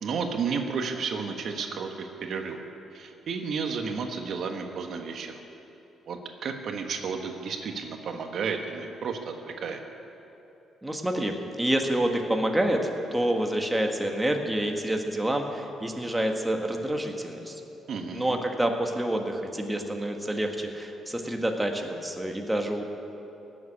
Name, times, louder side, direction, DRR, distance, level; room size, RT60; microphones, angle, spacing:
voice 1, 0.0-2.6 2.9-5.4 6.1-9.8 17.9-18.4, right 5 dB, 65° right, 4 dB, 1.3 m, -32 dB
voice 2, 10.8-17.6 18.1-22.8, right 1 dB, 10° right, 3 dB, 1.5 m, -28 dB
16.5 x 7.7 x 9.9 m, 2.9 s
cardioid pair, 90°, 0 cm